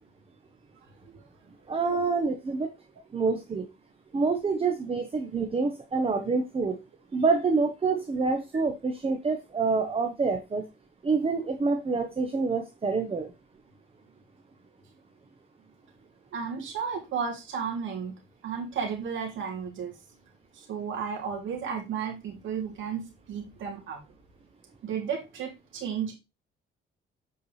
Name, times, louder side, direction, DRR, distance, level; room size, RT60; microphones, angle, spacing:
voice 1, 1.7-2.7 3.1-3.7 4.1-6.8 7.1-10.7 11.0-13.3, right 4 dB, 30° right, 5 dB, 1.1 m, -27 dB
voice 2, 16.3-20.0 20.5-24.0 24.8-26.1, right 6 dB, 75° right, 1 dB, 2.8 m, -33 dB
8.3 x 4.6 x 3.3 m, 0.25 s
cardioid pair, 90°, 20 cm